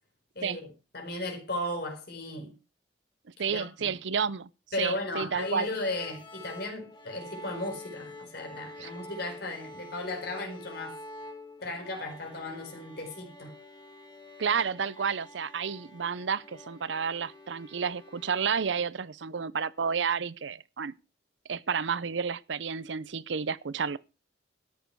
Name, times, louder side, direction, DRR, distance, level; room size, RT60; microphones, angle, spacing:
voice 1, 0.3-2.6 3.4-4.0 4.7-11.0 11.6-13.6, left 2 dB, 60° left, 4.8 m, -36 dB
voice 2, 3.4-4.5 4.8-5.7 8.8-8.9 14.4-20.9 21.5-24.0, right 6 dB, 85° right, 0.6 m, -31 dB
sound 1, 5.4-18.5, left 2 dB, 25° left, 2.4 m, -47 dB
13.5 x 10.0 x 4.7 m
head